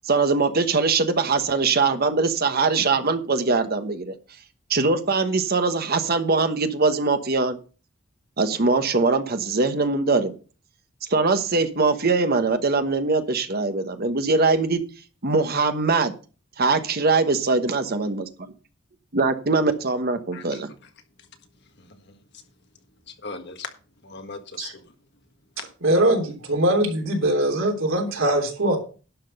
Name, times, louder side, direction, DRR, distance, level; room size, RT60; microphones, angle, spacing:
voice 1, 0.0-4.1 4.7-7.6 8.4-10.3 11.1-14.8 15.2-16.1 16.6-18.3 19.1-20.7, right 3 dB, 50° right, 1.1 m, -22 dB
voice 2, 21.8-22.2 23.1-23.7 24.0-24.8, left 4 dB, 60° left, 1.6 m, -39 dB
voice 3, 25.8-28.8, right 1 dB, 90° right, 3.2 m, -21 dB
11.5 x 6.0 x 5.4 m
head